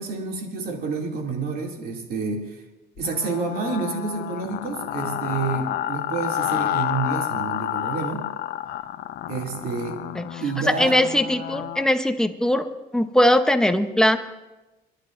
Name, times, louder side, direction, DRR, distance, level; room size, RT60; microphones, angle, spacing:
voice 1, 0.0-2.6 3.0-8.3 9.3-10.0 10.4-11.0, right 4 dB, 60° right, 1 dB, 2.7 m, -29 dB
sound 1, 3.0-11.9, left 12 dB, 70° left, 0.7 m, -30 dB
voice 2, 10.8-12.7 12.9-14.2, left 1 dB, 5° left, 7 dB, 0.9 m, -20 dB
29.0 x 11.5 x 2.6 m, 1.1 s
cardioid pair, 110°, 17 cm